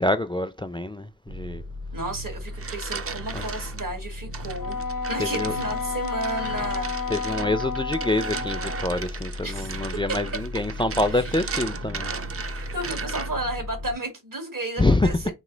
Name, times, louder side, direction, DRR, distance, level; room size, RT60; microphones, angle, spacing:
voice 1, 0.0-1.6 5.2-5.5 7.1-12.1 14.8-15.1, left 2 dB, 15° left, 0.3 m, -26 dB
sound 1, 1.3-13.9, left 1 dB, 85° right, 1.2 m, -36 dB
voice 2, 1.9-4.8 5.1-7.2 9.4-9.7 11.1-11.5 12.4-15.3, right 2 dB, 70° right, 1.6 m, -33 dB
sound 2, 2.3-3.8 4.3-13.5, right 5 dB, 45° right, 0.5 m, -36 dB
Wind instrument woodwind instrument, 4.6-9.1, left 5 dB, 80° left, 0.8 m, -31 dB
3.2 x 3.0 x 3.8 m
wide cardioid pair, 45°, 34 cm